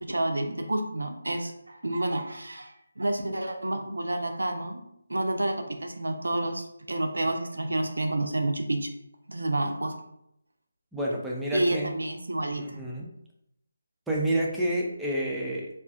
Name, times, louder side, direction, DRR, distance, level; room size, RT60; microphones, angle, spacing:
voice 1, 0.0-4.8 5.1-8.9 9.3-10.0 11.5-12.8, right 1 dB, 75° right, 5 dB, 0.4 m, -29 dB
voice 2, 10.9-11.9 12.6-13.1 14.1-15.7, right 1 dB, 5° right, -4 dB, 0.4 m, -29 dB
2.4 x 2.3 x 2.4 m, 0.77 s
figure-of-eight pair, 155°, 0 cm